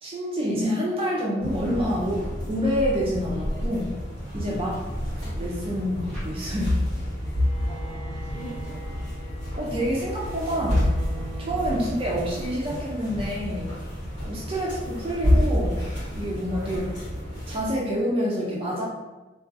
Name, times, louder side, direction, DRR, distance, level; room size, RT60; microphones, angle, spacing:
voice 1, 0.0-3.9 4.3-4.8 5.4-6.8 9.5-10.9 11.4-13.7 14.3-15.8 16.1-16.8 17.5-18.8, equal, 30° right, -4 dB, 0.3 m, -27 dB
sound 1, 1.4-17.7, left 1 dB, 70° left, 1.1 m, -29 dB
sound 2, 4.1-6.9 7.2-7.5 8.1-8.6 10.6-11.1 13.0-13.5, equal, ahead, 0.8 m, -43 dB
voice 2, 4.8-5.3 7.7-8.8 11.7-11.9 14.5-14.7 16.6-17.0, right 1 dB, 35° left, -11 dB, 1.2 m, -44 dB
Bowed string instrument, 7.2-12.6, right 1 dB, 90° left, 0.6 m, -43 dB
2.5 x 2.2 x 2.4 m, 1.1 s
head